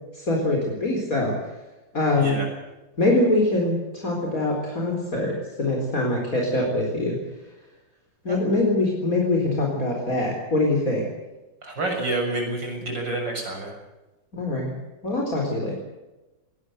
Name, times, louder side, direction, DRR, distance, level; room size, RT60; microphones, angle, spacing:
voice 1, 0.1-1.4 1.9-2.4 3.0-7.2 8.2-11.1 14.3-14.7 15.0-15.8, left 2 dB, 50° left, -1 dB, 4.6 m, -23 dB
voice 2, 11.6-13.7, right 2 dB, 85° right, 2 dB, 7.6 m, -28 dB
20.5 x 19.0 x 8.1 m, 1.1 s
omnidirectional pair, 1.9 m